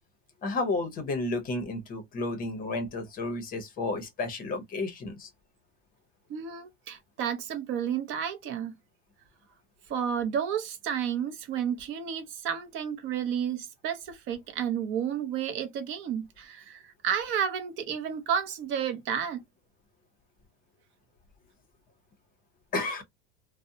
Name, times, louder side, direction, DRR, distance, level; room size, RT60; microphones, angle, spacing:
voice 1, 0.4-5.3 22.7-23.0, left 2 dB, 30° left, 0.7 m, -32 dB
voice 2, 6.3-8.7 9.9-19.4, right 8 dB, 40° right, 0.6 m, -31 dB
2.6 x 2.0 x 2.6 m
supercardioid pair, 135°, 31 cm